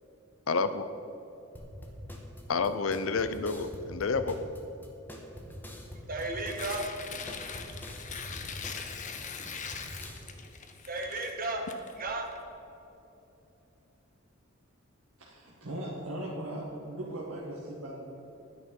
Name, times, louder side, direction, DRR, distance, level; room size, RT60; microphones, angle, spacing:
voice 1, 0.5-0.9 2.5-4.5, left 4 dB, 75° left, 11 dB, 0.6 m, -29 dB
sound 1, 1.5-10.2, equal, 10° left, 1.4 m, -45 dB
Tearing, 6.1-12.4, left 6 dB, 35° left, 0.8 m, -41 dB
voice 2, 6.1-6.9 10.9-11.7 12.0-12.3, right 2 dB, 45° right, 2 dB, 1.6 m, -34 dB
voice 3, 15.2-18.0, right 1 dB, 75° right, -5 dB, 1.7 m, -38 dB
11.0 x 9.9 x 5.4 m, 3.0 s
head